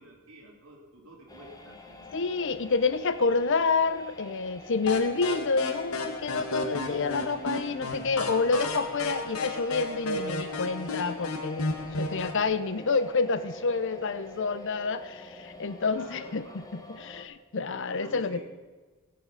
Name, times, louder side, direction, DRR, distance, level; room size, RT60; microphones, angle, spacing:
voice 1, 0.0-2.2 15.9-16.6 17.8-18.4, right 1 dB, 75° right, -2 dB, 3.5 m, -50 dB
sound 1, 1.3-17.2, left 2 dB, 15° left, 1.2 m, -46 dB
voice 2, 2.1-18.4, left 4 dB, 60° left, 13 dB, 0.7 m, -28 dB
sound 2, 4.9-12.4, left 2 dB, 85° left, 1.6 m, -33 dB
17.0 x 7.8 x 5.6 m, 1.3 s
head